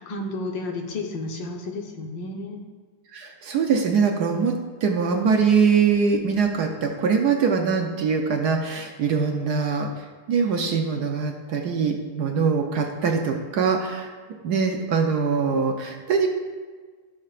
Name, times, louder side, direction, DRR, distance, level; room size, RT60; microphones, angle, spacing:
voice 1, 0.0-2.6, left 2 dB, 65° left, 2 dB, 1.7 m, -32 dB
voice 2, 3.1-4.5 4.8-9.9 10.3-14.1 14.4-16.3, right 5 dB, 65° right, 3 dB, 1.1 m, -22 dB
17.0 x 6.1 x 2.5 m, 1.4 s
omnidirectional pair, 2.2 m